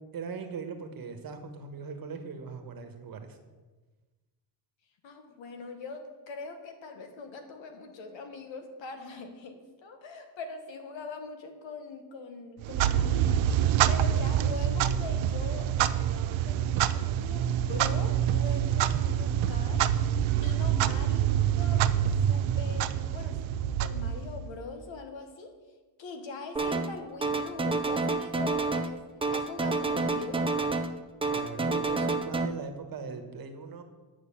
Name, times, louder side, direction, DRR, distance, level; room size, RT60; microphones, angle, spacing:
voice 1, 0.1-3.4 31.3-33.8, right 5 dB, 50° right, 6 dB, 1.4 m, -39 dB
voice 2, 5.0-19.8 20.1-21.2 21.6-21.8 22.3-23.4 23.7-25.5 26.0-29.0 29.3-30.5, left 3 dB, 75° left, 5 dB, 1.7 m, -42 dB
Clock, 12.6-24.6, right 10 dB, 85° right, 0.7 m, -26 dB
sound 1, 26.6-27.0 27.2-28.9 29.2-30.9 31.2-32.5, right 3 dB, 10° right, 0.5 m, -29 dB
9.5 x 6.1 x 8.6 m, 1.3 s
cardioid pair, 155°, 46 cm